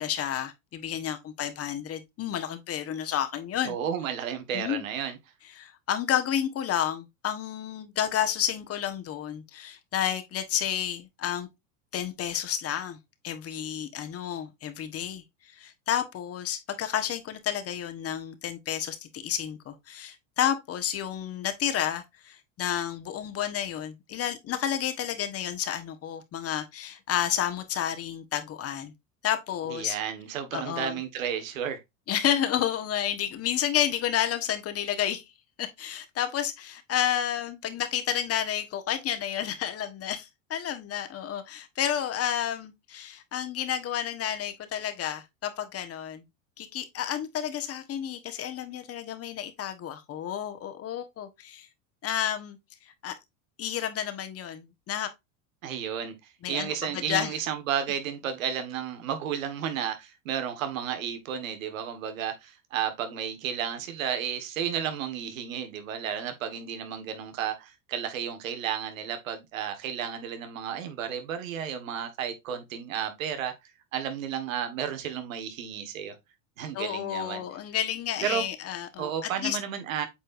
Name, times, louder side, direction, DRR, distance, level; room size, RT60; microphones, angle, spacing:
voice 1, 0.0-3.8 4.5-4.8 5.6-11.5 11.9-13.0 13.2-15.2 15.5-28.9 29.2-30.0 30.5-31.0 32.1-35.2 35.6-46.2 46.6-51.7 52.0-52.6 53.0-53.1 53.6-55.1 56.4-57.3 76.7-79.6, left 10 dB, 35° left, 1.4 m, -31 dB
voice 2, 3.6-5.2 29.7-31.8 55.6-56.1 56.5-73.5 73.9-76.1 76.6-77.4 78.2-78.4 79.0-80.1, right 8 dB, 85° right, 1.7 m, -32 dB
8.2 x 4.4 x 2.6 m
supercardioid pair, 110°, 39 cm